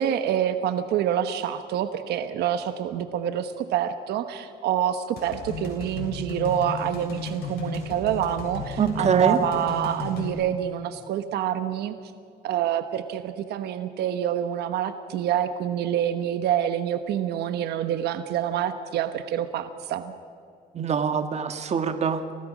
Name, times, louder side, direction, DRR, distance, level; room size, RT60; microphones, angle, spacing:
voice 1, 0.0-11.9 12.4-20.1, right 10 dB, 75° right, 10 dB, 1.1 m, -27 dB
sound 1, 5.2-10.3, left 4 dB, 65° left, 7.1 m, -34 dB
voice 2, 8.8-9.4 20.7-22.2, right 7 dB, 40° right, 8 dB, 1.4 m, -23 dB
28.0 x 17.5 x 6.2 m, 2.3 s
cardioid pair, 110°, 17 cm